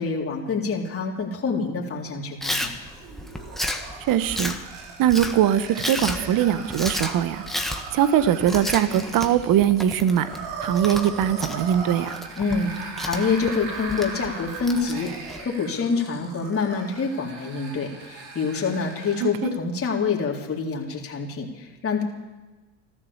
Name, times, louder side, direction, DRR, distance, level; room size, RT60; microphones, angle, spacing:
voice 1, 0.0-2.7 12.4-15.1 15.4-22.0, left 4 dB, 30° left, -2 dB, 3.8 m, -26 dB
Chewing mastication, 2.4-15.4, left 1 dB, ahead, 1.6 m, -33 dB
sound 1, 2.8-19.4, right 4 dB, 70° right, 3.2 m, -39 dB
voice 2, 4.1-4.6 5.0-10.3 10.6-12.2 19.2-19.5, right 10 dB, 45° right, 13 dB, 1.1 m, -21 dB
13.5 x 13.5 x 7.3 m, 1.2 s
supercardioid pair, 90°, 46 cm